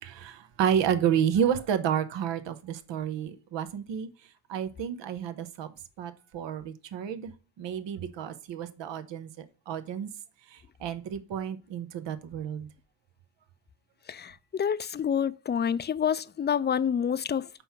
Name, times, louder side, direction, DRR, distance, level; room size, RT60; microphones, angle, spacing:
voice 1, 0.0-4.1 4.5-5.7 6.0-7.3 7.6-10.1 10.5-12.7, right 9 dB, 85° right, 0.8 m, -30 dB
voice 2, 14.1-17.5, left 8 dB, 25° left, 0.4 m, -28 dB
5.4 x 4.4 x 5.8 m
supercardioid pair, 45°, 43 cm